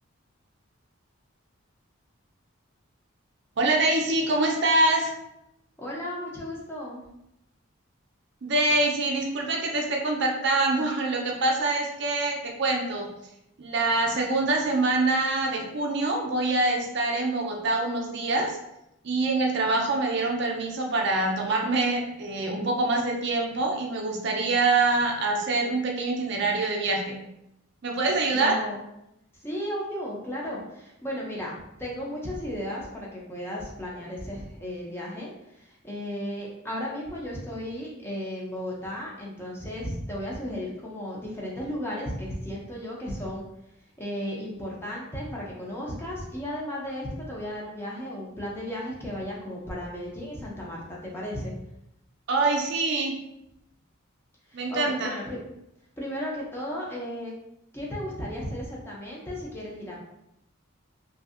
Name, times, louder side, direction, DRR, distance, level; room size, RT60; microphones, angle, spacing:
voice 1, 3.6-5.1 8.4-13.1 13.6-18.6 19.0-27.2 27.8-28.6 52.3-53.2 54.5-55.1, right 2 dB, 55° right, 1 dB, 0.4 m, -25 dB
voice 2, 5.8-7.0 28.3-28.8 29.4-43.4 44.0-51.5 54.5-55.4 56.0-57.3 57.7-60.0, equal, 10° left, -4 dB, 0.4 m, -35 dB
2.6 x 2.5 x 2.4 m, 0.83 s
head